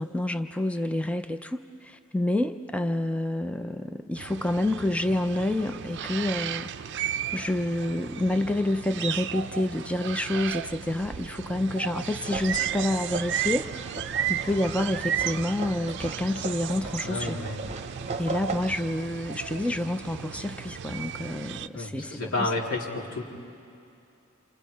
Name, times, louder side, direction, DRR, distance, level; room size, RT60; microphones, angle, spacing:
voice 1, 0.0-7.1 7.3-17.4 18.2-22.5, left 1 dB, 5° left, 8 dB, 0.5 m, -28 dB
sound 1, 4.2-21.7, right 9 dB, 55° right, 0.5 m, -34 dB
sound 2, 12.2-18.8, right 3 dB, 30° right, 0.9 m, -37 dB
voice 2, 17.0-17.6 21.7-23.2, left 2 dB, 90° left, -4 dB, 3.4 m, -30 dB
28.5 x 27.0 x 5.2 m, 2.5 s
head